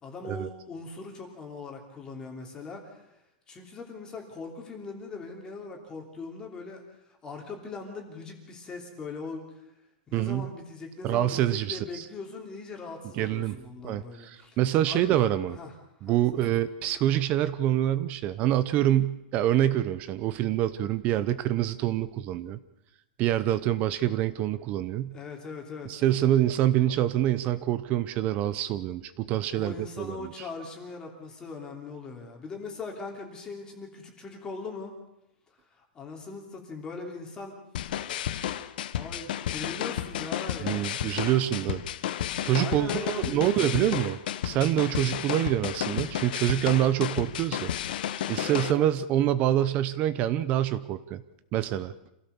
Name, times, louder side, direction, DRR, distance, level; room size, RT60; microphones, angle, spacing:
voice 1, 0.0-3.1 3.5-9.6 10.1-14.6 14.9-15.7 16.0-16.6 25.1-26.0 29.5-35.0 35.7-37.6 38.9-41.0 42.3-43.9 48.3-48.9, left 4 dB, 15° left, 1 dB, 3.1 m, -40 dB
voice 2, 10.1-10.5 11.0-12.0 13.1-13.6 13.8-15.6 16.0-22.6 23.2-25.1 25.8-30.3 40.6-41.8 42.4-44.2 44.4-47.7 48.3-51.2 51.5-51.9, right 12 dB, 25° right, 14 dB, 0.7 m, -26 dB
sound 1, 37.7-48.7, left 11 dB, 60° left, 1.3 m, -32 dB
27.0 x 16.5 x 7.0 m, 0.88 s
supercardioid pair, 170°, 5 cm